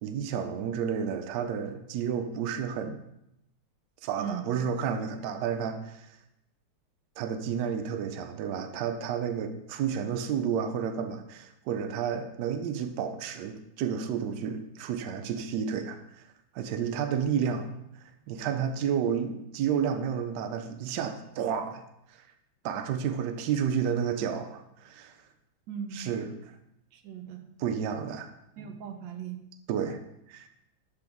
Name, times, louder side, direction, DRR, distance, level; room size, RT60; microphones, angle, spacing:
voice 1, 0.0-3.0 4.0-6.1 7.2-16.2 16.5-22.2 22.6-25.1 25.9-26.5 27.6-28.3 29.7-30.0 30.3-30.5, right 7 dB, 85° right, 7 dB, 0.9 m, -31 dB
voice 2, 25.7-26.1 26.9-27.5 28.6-29.4, right 7 dB, 70° right, 6 dB, 1.2 m, -38 dB
7.5 x 5.1 x 3.5 m, 0.82 s
omnidirectional pair, 2.4 m